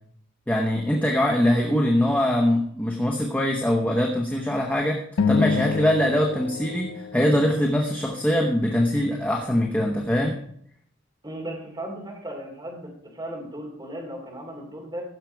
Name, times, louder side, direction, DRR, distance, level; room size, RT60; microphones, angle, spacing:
voice 1, 0.5-10.4, left 1 dB, 5° left, 0 dB, 1.0 m, -23 dB
sound 1, 5.2-7.8, left 5 dB, 65° left, 0.5 m, -27 dB
voice 2, 11.2-15.0, right 1 dB, 20° right, -1 dB, 2.8 m, -36 dB
15.5 x 6.7 x 4.6 m, 0.64 s
head